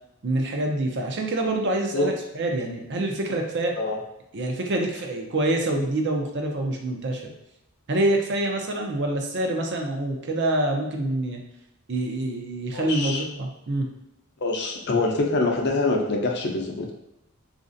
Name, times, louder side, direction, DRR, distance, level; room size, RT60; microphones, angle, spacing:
voice 1, 0.2-3.7 4.3-7.3 7.9-11.4 11.9-13.9, right 1 dB, 50° right, 2 dB, 0.6 m, -26 dB
voice 2, 12.7-13.2 14.4-16.9, left 2 dB, 50° left, 1 dB, 0.6 m, -25 dB
4.1 x 2.5 x 2.6 m, 0.89 s
head